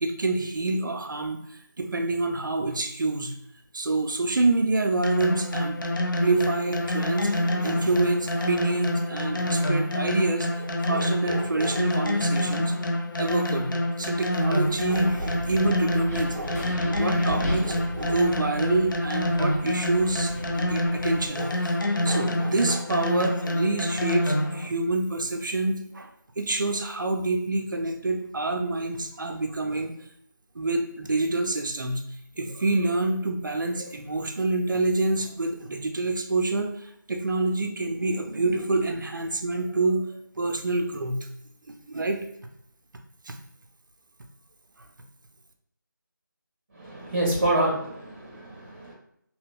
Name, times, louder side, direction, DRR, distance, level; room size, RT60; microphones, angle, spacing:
voice 1, 0.0-1.4 1.8-3.3 3.7-5.8 6.2-12.7 13.2-13.7 14.0-21.8 22.0-26.1 26.4-29.9 30.6-32.0 32.4-41.3 41.7-42.3 43.3-43.4, right 2 dB, 65° right, 4 dB, 0.4 m, -27 dB
sound 1, 5.0-24.7, left 1 dB, 75° left, 0.5 m, -27 dB
Wind, 14.4-21.3, equal, 50° left, 1.4 m, -36 dB
voice 2, 46.7-48.9, right 1 dB, 40° right, -2 dB, 1.1 m, -27 dB
3.1 x 2.9 x 2.3 m, 0.73 s
figure-of-eight pair, 170°, 11 cm